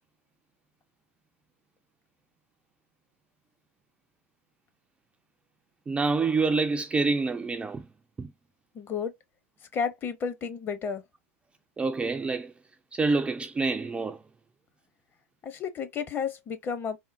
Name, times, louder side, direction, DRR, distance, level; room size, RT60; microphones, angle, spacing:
voice 1, 5.9-7.9 8.2-8.3 11.8-12.5 12.9-14.2, right 3 dB, 15° right, 0.3 m, -27 dB
voice 2, 8.7-9.1 9.7-11.0 15.4-17.0, left 6 dB, 30° left, 0.7 m, -32 dB
3.6 x 2.1 x 2.5 m
hypercardioid pair, 95°, 8 cm